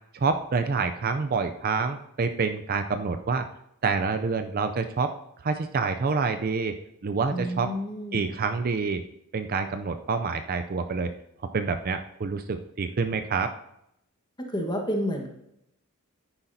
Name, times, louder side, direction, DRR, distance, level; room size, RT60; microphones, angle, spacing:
voice 1, 0.1-3.4 3.8-5.1 5.4-6.8 7.0-7.7 8.1-9.0 9.3-11.1 11.5-13.5, right 4 dB, 40° right, 8 dB, 0.4 m, -27 dB
voice 2, 7.3-8.2 14.5-15.3, equal, 20° left, 2 dB, 1.3 m, -30 dB
9.9 x 9.8 x 2.7 m, 0.80 s
head